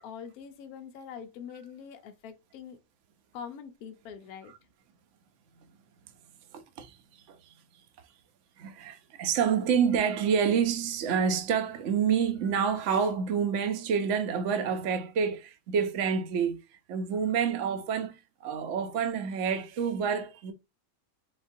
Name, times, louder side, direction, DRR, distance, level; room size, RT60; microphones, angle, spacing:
voice 1, 0.0-2.8 3.3-4.5, left 7 dB, 70° left, 1.1 m, -44 dB
voice 2, 6.5-7.4 8.6-16.6 16.9-20.5, right 7 dB, 60° right, 0.9 m, -28 dB
4.2 x 3.8 x 2.6 m
omnidirectional pair, 1.7 m